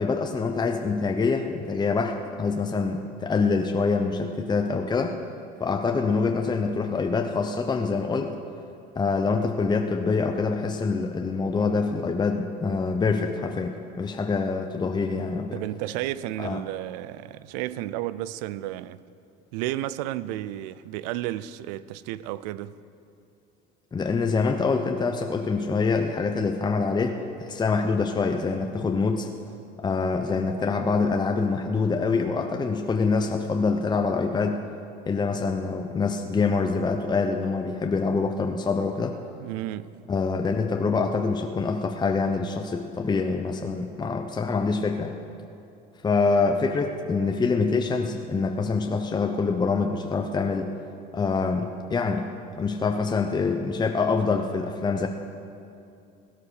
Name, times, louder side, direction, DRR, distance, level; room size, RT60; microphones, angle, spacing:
voice 1, 0.0-5.2 5.6-8.3 8.9-15.6 16.4-16.6 23.9-29.3 29.8-34.6 35.1-39.2 40.1-45.1 46.0-50.7 51.1-52.3 52.5-55.1, left 4 dB, 20° left, 0.8 m, -25 dB
voice 2, 15.5-19.0 19.5-22.8 39.4-40.1, right 14 dB, 85° right, 0.5 m, -32 dB
16.5 x 10.5 x 6.4 m
supercardioid pair, 105°, 20 cm